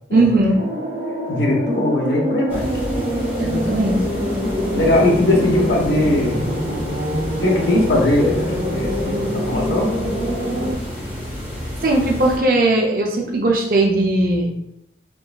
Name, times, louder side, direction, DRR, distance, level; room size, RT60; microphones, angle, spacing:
voice 1, 0.1-0.6 3.4-4.0 11.8-14.5, right 2 dB, 50° right, 0 dB, 0.5 m, -18 dB
sound 1, 0.5-10.7, equal, 80° right, 1.4 m, -25 dB
voice 2, 1.3-2.7 4.7-6.4 7.4-9.9, left 1 dB, 75° left, -2 dB, 1.0 m, -19 dB
sound 2, 2.5-12.4, left 1 dB, 10° right, 0.9 m, -30 dB
3.7 x 3.5 x 2.3 m, 0.80 s
head